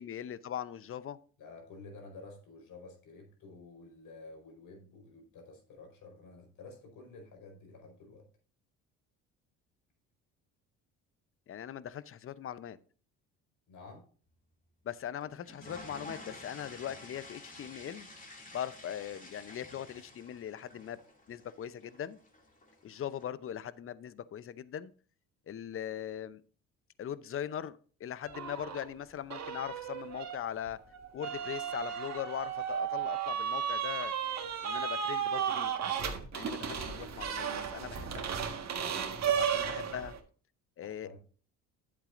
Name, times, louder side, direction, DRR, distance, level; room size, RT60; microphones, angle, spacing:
voice 1, 0.0-1.2 11.5-12.8 14.8-18.1 18.5-21.0 21.3-22.2 22.8-24.9 25.5-26.4 27.0-30.8 31.1-34.1 34.6-35.7 36.3-38.3 39.3-40.2 40.8-41.1, left 10 dB, 35° left, 17 dB, 0.7 m, -40 dB
voice 2, 1.4-8.3 13.7-14.1 36.4-37.5 38.9-39.4 40.8-41.2, left 3 dB, 60° left, 3 dB, 4.7 m, -52 dB
sound 1, 15.2-23.2, left 2 dB, 20° left, 2.5 m, -51 dB
sound 2, 28.2-28.9 29.3-40.2, right 8 dB, 45° right, 1.6 m, -34 dB
11.0 x 8.1 x 2.6 m, 0.41 s
supercardioid pair, 70°, 36 cm